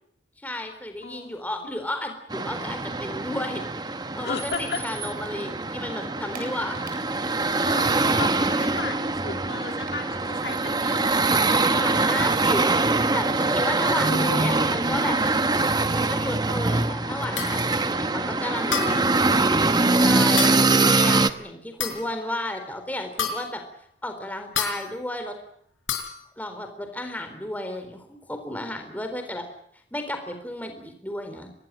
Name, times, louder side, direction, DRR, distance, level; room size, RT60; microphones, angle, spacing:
voice 1, 0.4-7.0 11.7-12.7 13.1-15.2 15.9-19.2 19.9-23.6 24.0-25.3 26.4-29.5 29.9-31.5, left 1 dB, 10° left, 6 dB, 3.9 m, -33 dB
voice 2, 1.0-1.7 4.2-4.9 7.7-11.1 14.1-14.6, left 3 dB, 55° left, 5 dB, 2.1 m, -34 dB
sound 1, 2.3-21.3, right 3 dB, 20° right, 1.0 m, -23 dB
Typing, 4.2-5.6 5.9-10.4 10.6-14.2 14.5-15.8, right 4 dB, 45° right, 7.6 m, -48 dB
sound 2, 17.4-17.6 18.7-19.1 20.4-20.7 21.8-22.2 23.2-23.6 24.6-24.9 25.9-26.2, left 7 dB, 85° left, 5.2 m, -29 dB
25.0 x 20.0 x 9.0 m, 0.67 s
head